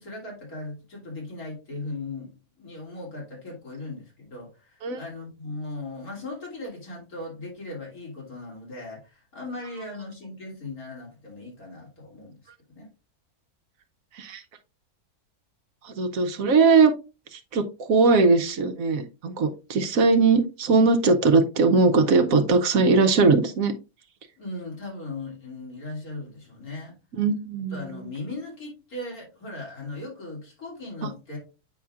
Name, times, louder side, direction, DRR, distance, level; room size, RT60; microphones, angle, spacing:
voice 1, 0.0-12.9 24.4-27.0 27.7-31.4, left 2 dB, 75° left, -3 dB, 3.3 m, -38 dB
voice 2, 16.0-16.9 17.3-23.7 27.2-27.8, right 4 dB, 70° right, 8 dB, 1.2 m, -20 dB
8.6 x 5.7 x 2.4 m, 0.30 s
omnidirectional pair, 1.6 m